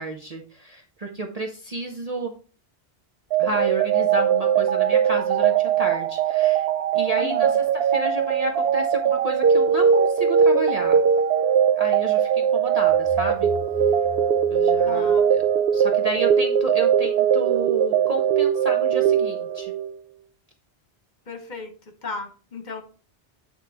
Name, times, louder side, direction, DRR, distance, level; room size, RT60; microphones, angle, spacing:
voice 1, 0.0-2.3 3.4-6.7 6.9-7.5 7.7-11.0 11.8-13.5 14.5-15.4 15.7-19.7, right 2 dB, 40° right, 2 dB, 0.8 m, -31 dB
sound 1, 3.3-19.9, right 8 dB, 75° right, 0.9 m, -20 dB
voice 2, 7.2-7.6 14.8-15.3 21.3-21.7 22.0-22.8, left 4 dB, 45° left, 6 dB, 1.3 m, -35 dB
sound 2, 12.9-15.8, left 7 dB, 10° left, 1.5 m, -41 dB
9.1 x 3.1 x 4.8 m, 0.38 s
omnidirectional pair, 1.1 m